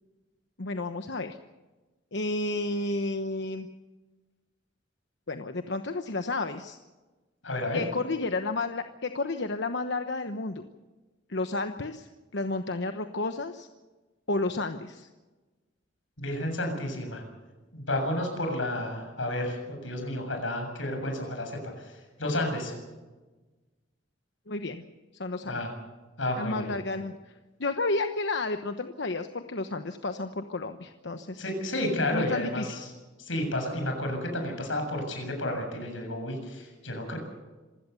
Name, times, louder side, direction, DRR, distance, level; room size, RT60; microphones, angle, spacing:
voice 1, 0.6-1.4 2.1-3.7 5.3-6.8 7.7-10.7 11.3-13.7 14.3-15.1 24.5-24.8 25.2-25.6 26.3-27.2 27.6-31.5 32.1-32.8, left 2 dB, 65° left, 7 dB, 1.1 m, -31 dB
voice 2, 7.4-7.8 16.2-17.2 17.7-21.6 22.2-22.7 25.4-25.7 26.2-26.7 31.4-32.8 33.3-37.2, left 1 dB, 90° left, 4 dB, 7.3 m, -31 dB
26.5 x 16.5 x 7.0 m, 1.2 s
head